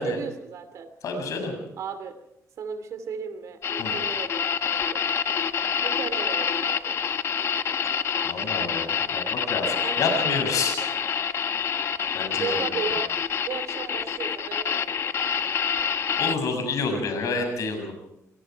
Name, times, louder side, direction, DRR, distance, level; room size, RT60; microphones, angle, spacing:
voice 1, 0.0-0.9 1.8-2.2 2.6-5.0 5.8-7.0 9.8-10.9 12.4-13.1 13.5-14.8, right 6 dB, 60° right, 10 dB, 2.7 m, -35 dB
voice 2, 1.0-1.5 3.8-3.9 8.2-10.8 12.1-12.6 16.2-17.9, left 4 dB, 65° left, 5 dB, 7.0 m, -28 dB
sound 1, 3.6-16.4, left 7 dB, 50° left, 1.1 m, -27 dB
27.0 x 21.5 x 4.7 m, 0.80 s
cardioid pair, 155°, 6 cm